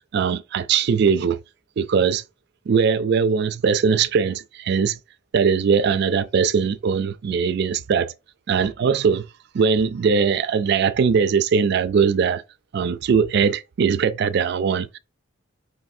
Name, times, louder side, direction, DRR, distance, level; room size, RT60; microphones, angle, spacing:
voice 1, 0.1-1.4 1.8-2.2 2.7-5.0 5.3-8.1 8.5-9.3 9.5-12.4 12.7-15.0, right 6 dB, 55° right, 0.3 m, -20 dB
5.1 x 3.3 x 2.6 m
head